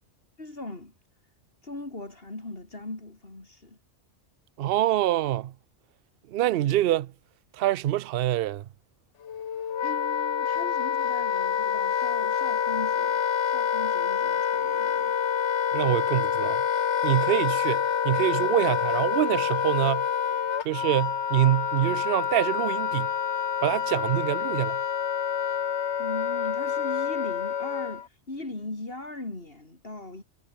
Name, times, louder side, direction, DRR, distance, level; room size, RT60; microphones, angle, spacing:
voice 1, 0.4-0.9 1.6-3.8 9.8-15.2 26.0-30.2, left 2 dB, 50° left, 3.9 m, -39 dB
voice 2, 4.6-5.5 6.3-7.1 7.6-8.7 15.7-16.6 17.0-20.1 20.6-23.1 23.6-24.8, right 13 dB, 60° right, 0.7 m, -25 dB
Wind instrument woodwind instrument, 9.2-28.1, left 8 dB, 70° left, 1.3 m, -27 dB
omnidirectional pair, 1.2 m